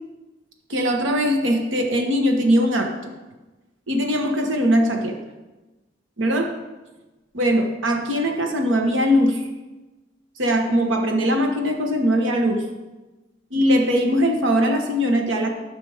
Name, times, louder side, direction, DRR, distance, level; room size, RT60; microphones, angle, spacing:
voice 1, 0.7-3.1 3.9-5.1 6.2-6.5 7.3-9.5 10.4-12.6 13.5-15.5, equal, 75° right, 3 dB, 1.3 m, -20 dB
13.0 x 5.9 x 3.5 m, 1.1 s
head